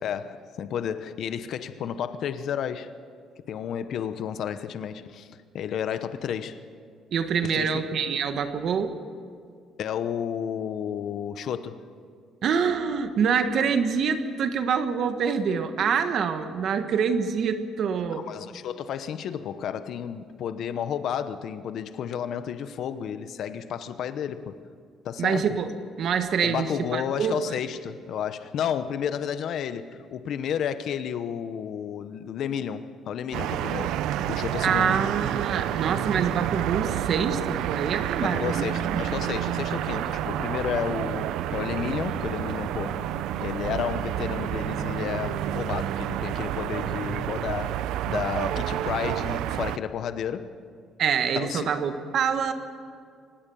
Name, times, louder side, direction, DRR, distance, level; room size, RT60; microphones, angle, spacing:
voice 1, 0.0-2.9 3.5-5.3 5.5-6.6 7.4-7.8 9.8-11.8 18.2-24.7 25.0-25.6 26.4-33.9 34.3-35.1 38.2-50.6 51.3-51.8, left 8 dB, 55° left, 11 dB, 1.0 m, -32 dB
voice 2, 7.1-8.9 12.4-18.3 25.2-25.7 26.0-27.6 34.6-39.1 51.0-52.5, right 6 dB, 50° right, 8 dB, 1.4 m, -26 dB
sound 1, 33.3-49.8, right 11 dB, 80° right, 0.7 m, -29 dB
24.5 x 19.5 x 7.1 m, 2.2 s
cardioid pair, 165°, 0 cm